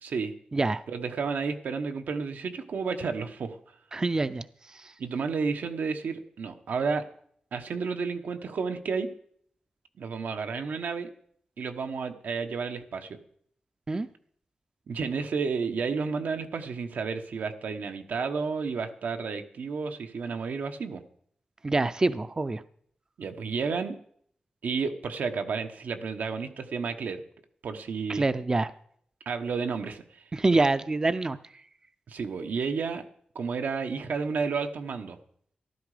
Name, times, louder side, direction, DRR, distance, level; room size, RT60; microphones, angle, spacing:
voice 1, 0.0-0.3 0.9-3.6 5.0-7.0 7.5-9.1 10.0-11.1 11.6-13.2 14.9-21.0 23.2-24.0 24.6-27.2 27.6-28.2 29.2-30.2 32.1-33.0 33.3-35.2, right 5 dB, 90° right, 6 dB, 1.2 m, -31 dB
voice 2, 0.5-0.8 3.9-4.5 4.8-4.9 13.9-14.1 21.6-22.6 28.1-28.7 30.3-31.4, right 3 dB, 25° right, 13 dB, 0.4 m, -25 dB
14.0 x 12.5 x 5.0 m, 0.64 s
wide cardioid pair, 150°, 3 cm